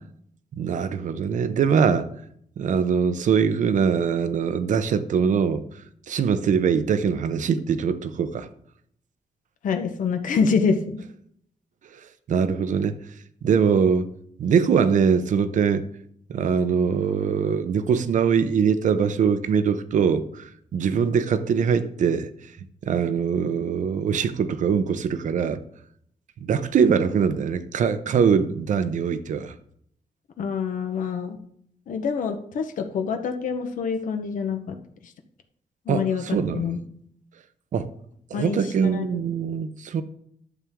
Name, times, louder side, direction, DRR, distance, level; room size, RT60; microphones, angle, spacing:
voice 1, 0.6-2.1 2.6-5.6 6.1-8.5 12.3-13.0 13.4-14.1 14.4-15.8 16.3-22.3 22.8-25.6 26.4-29.5 35.9-36.7 37.7-37.9 38.3-40.0, right 6 dB, 65° right, 0.8 m, -22 dB
voice 2, 9.6-11.1 30.4-31.4 31.9-34.8 35.0-35.1 35.9-36.8 38.3-39.0, left 5 dB, 70° left, 1.0 m, -26 dB
11.5 x 7.4 x 3.7 m
wide cardioid pair, 145°, 14 cm